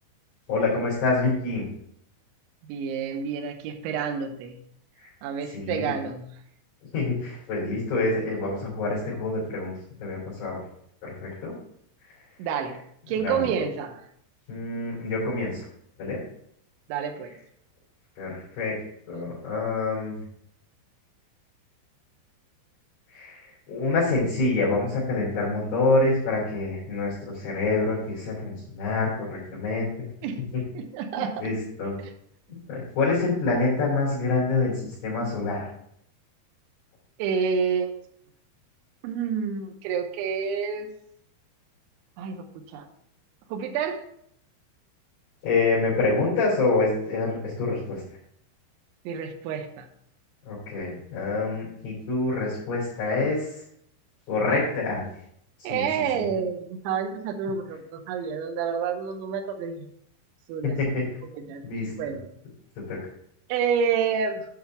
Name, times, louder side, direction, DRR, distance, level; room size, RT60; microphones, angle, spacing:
voice 1, 0.5-1.7 5.0-5.1 5.5-6.0 6.9-9.7 10.0-10.6 11.0-11.5 13.2-13.4 14.5-15.7 16.0-16.2 18.2-18.7 19.1-20.2 23.1-29.9 30.5-30.6 31.1-32.0 32.7-35.7 45.4-48.0 50.5-53.5 54.3-55.0 55.6-55.9 56.1-56.3 60.6-61.1 61.6-61.9 62.8-63.0, left 3 dB, 50° left, -7 dB, 4.7 m, -26 dB
voice 2, 2.7-4.6 5.2-6.3 12.4-12.8 13.1-14.0 16.9-17.3 30.2-30.4 30.7-31.5 37.2-37.9 39.0-40.9 42.2-42.5 42.7-42.9 43.5-44.0 49.1-49.9 55.6-59.9 60.5-60.8 61.3-61.6 62.0-62.2 63.5-64.5, right 6 dB, 80° right, 4 dB, 3.0 m, -28 dB
8.9 x 5.4 x 4.5 m, 0.71 s
omnidirectional pair, 5.7 m